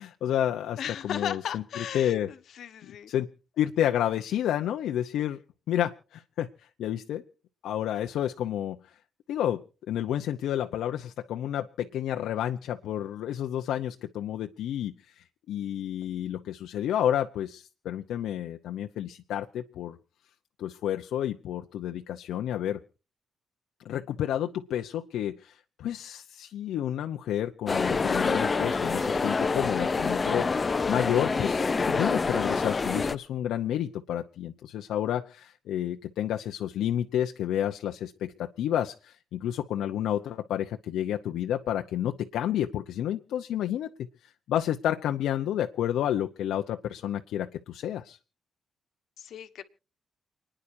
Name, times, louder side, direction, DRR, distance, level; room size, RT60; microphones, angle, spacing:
voice 1, 0.0-2.3 3.1-3.3 3.6-5.4 5.7-7.2 7.6-9.0 9.3-9.6 9.9-20.0 20.6-22.8 23.8-48.2, left 11 dB, 85° left, 5 dB, 0.8 m, -30 dB
voice 2, 0.8-3.1 49.2-49.6, left 9 dB, 60° left, 10 dB, 1.2 m, -36 dB
sound 1, 27.7-33.2, left 4 dB, 25° left, 0.6 m, -27 dB
29.5 x 10.0 x 2.7 m, 0.35 s
cardioid pair, 160°, 0 cm